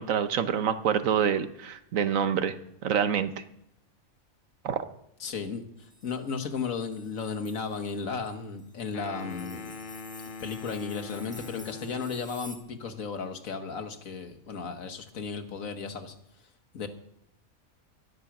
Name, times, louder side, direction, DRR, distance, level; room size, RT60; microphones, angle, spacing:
voice 1, 0.0-2.5 2.8-3.3 4.6-4.8, right 8 dB, 75° right, 10 dB, 1.3 m, -26 dB
voice 2, 5.2-5.6 6.0-9.7 10.4-16.1 16.7-16.9, left 5 dB, 75° left, 7 dB, 1.7 m, -34 dB
sound 1, 5.8-7.9 8.6-8.8 9.2-12.6, left 1 dB, 5° left, 1.6 m, -51 dB
sound 2, 8.9-12.3, left 4 dB, 45° left, 0.8 m, -42 dB
13.0 x 12.0 x 6.0 m, 0.78 s
omnidirectional pair, 1.4 m